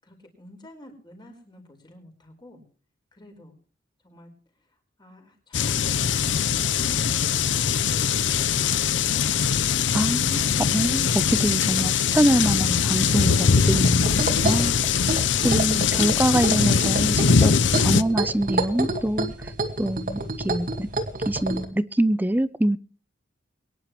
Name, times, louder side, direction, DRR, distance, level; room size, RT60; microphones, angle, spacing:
voice 1, 0.0-2.6 3.1-3.6 4.0-4.3 4.5-9.6, left 1 dB, 25° left, 4.9 m, -48 dB
sound 1, 5.5-18.0, left 6 dB, 75° left, 0.7 m, -22 dB
voice 2, 9.9-14.8 15.4-19.3 19.8-20.9 21.3-22.8, right 1 dB, 10° right, 0.5 m, -25 dB
sound 2, 13.8-21.7, right 2 dB, 45° right, 2.2 m, -29 dB
23.0 x 10.5 x 3.1 m
head